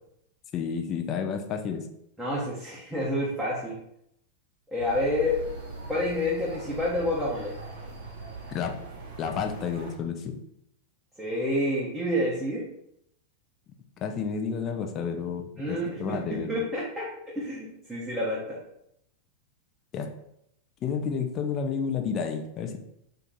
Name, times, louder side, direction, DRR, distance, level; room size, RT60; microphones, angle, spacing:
voice 1, 0.5-1.9 8.5-8.8 9.2-10.4 14.0-16.6 19.9-20.1 20.8-22.8, left 6 dB, 30° left, 4 dB, 0.4 m, -31 dB
voice 2, 2.2-3.8 4.7-5.4 5.9-7.5 11.2-12.6 15.6-18.6, left 1 dB, 5° right, -6 dB, 0.7 m, -29 dB
sound 1, 4.8-9.9, right 3 dB, 65° right, 1.1 m, -41 dB
2.5 x 2.5 x 3.9 m, 0.76 s
figure-of-eight pair, 90°, 0 cm